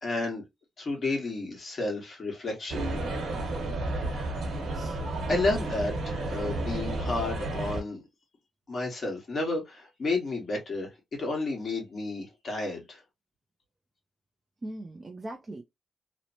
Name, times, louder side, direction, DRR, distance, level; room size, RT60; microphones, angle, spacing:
voice 1, 0.0-0.4 0.8-2.9 4.7-4.8 5.3-8.0 8.7-10.9 11.2-13.0, left 2 dB, 40° left, 1.3 m, -31 dB
sound 1, 2.7-7.8, right 2 dB, 75° right, 1.2 m, -32 dB
voice 2, 14.6-15.6, right 1 dB, 25° right, 0.4 m, -40 dB
3.0 x 2.0 x 2.6 m
wide cardioid pair, 140°, 0 cm